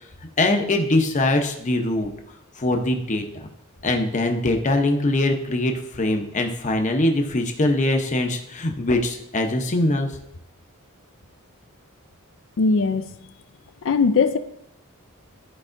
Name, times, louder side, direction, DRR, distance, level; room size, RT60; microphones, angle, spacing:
voice 1, 0.4-2.1 2.6-3.2 3.8-10.1, left 2 dB, 35° left, 4 dB, 0.7 m, -22 dB
voice 2, 12.6-13.1 13.8-14.4, left 4 dB, 60° left, 11 dB, 0.4 m, -19 dB
12.0 x 4.7 x 2.6 m, 0.75 s
head